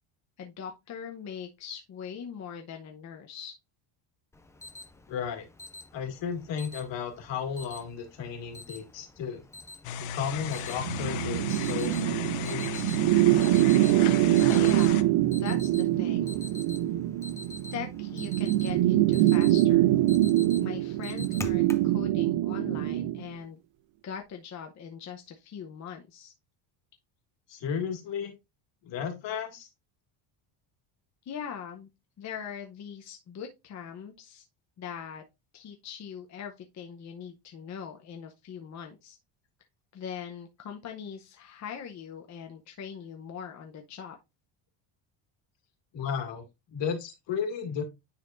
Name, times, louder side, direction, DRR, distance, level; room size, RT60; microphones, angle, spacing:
voice 1, 0.4-3.6 14.5-15.1 15.4-16.5 17.7-19.9 20.6-23.6 24.0-26.3 31.2-31.9 32.2-34.4 34.8-35.2 35.5-39.2 39.9-44.2, left 8 dB, 35° left, 3 dB, 0.8 m, -41 dB
Alarm, 4.3-21.9, left 2 dB, 5° left, 0.4 m, -47 dB
voice 2, 5.1-5.5 5.9-9.4 10.0-13.0 27.5-28.3 28.8-29.7 45.9-46.4 46.7-47.8, left 7 dB, 65° left, 5 dB, 2.2 m, -34 dB
sound 1, 9.8-15.0, left 7 dB, 80° left, 0.8 m, -35 dB
sound 2, 10.8-23.2, right 15 dB, 70° right, 0.5 m, -24 dB
9.7 x 4.2 x 2.5 m, 0.23 s
cardioid pair, 150°, 48 cm